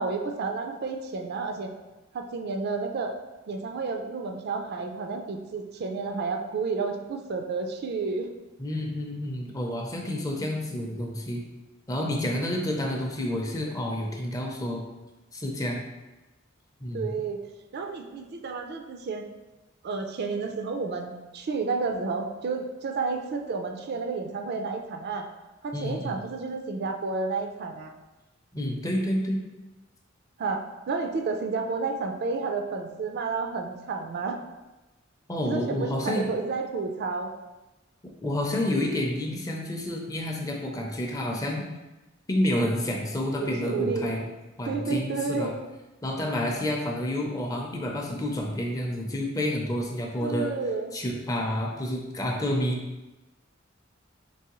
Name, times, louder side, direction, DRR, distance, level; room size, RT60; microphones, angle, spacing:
voice 1, 0.0-1.7 2.1-3.1 3.5-8.3 16.9-17.4 17.7-19.3 19.8-25.3 25.6-27.9 30.4-34.4 35.5-37.3 43.4-44.1 44.6-45.5 50.2-50.9, right 4 dB, 55° right, 4 dB, 0.4 m, -31 dB
voice 2, 8.6-11.4 11.9-14.8 15.3-15.8 16.8-17.1 25.7-26.2 28.5-29.4 35.3-36.3 38.2-41.6 42.3-44.3 44.6-45.5 46.0-50.5 50.9-52.8, left 1 dB, 20° left, 0 dB, 0.5 m, -29 dB
4.6 x 3.0 x 3.0 m, 1.1 s
head